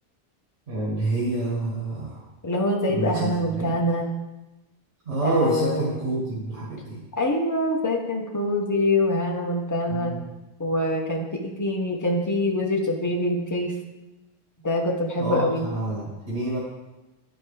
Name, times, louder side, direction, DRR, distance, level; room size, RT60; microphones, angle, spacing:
voice 1, 0.7-2.2 2.9-3.7 5.1-7.0 9.9-10.2 15.2-16.6, right 2 dB, 85° right, -7 dB, 1.8 m, -28 dB
voice 2, 2.4-4.1 5.2-6.0 7.2-10.1 10.6-13.7 14.6-15.6, left 1 dB, 20° left, 1 dB, 0.8 m, -25 dB
10.0 x 4.5 x 3.3 m, 1.0 s
omnidirectional pair, 1.1 m